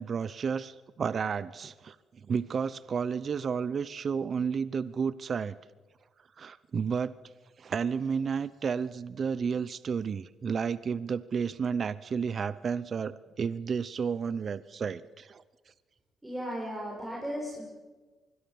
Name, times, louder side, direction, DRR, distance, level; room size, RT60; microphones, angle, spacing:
voice 1, 0.0-5.5 6.4-7.1 7.6-15.4, right 6 dB, 50° right, 17 dB, 0.7 m, -32 dB
voice 2, 16.2-17.7, equal, 10° right, -4 dB, 6.9 m, -36 dB
25.0 x 21.5 x 7.2 m, 1.3 s
cardioid pair, 90°, 0 cm